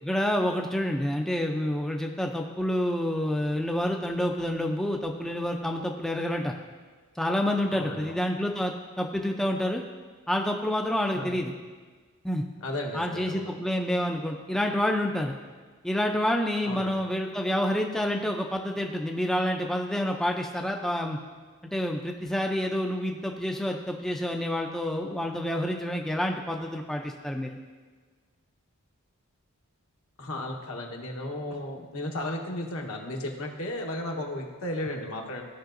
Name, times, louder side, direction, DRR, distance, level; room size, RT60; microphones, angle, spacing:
voice 1, 0.0-6.5 7.2-9.8 10.3-11.5 12.2-12.4 12.9-15.3 15.8-21.2 21.6-27.6, left 1 dB, ahead, 1 dB, 0.4 m, -28 dB
voice 2, 7.7-8.1 11.1-11.3 12.6-13.6 16.6-17.1 30.2-35.4, left 1 dB, 70° left, 1 dB, 1.1 m, -34 dB
15.5 x 5.6 x 2.6 m, 1.5 s
head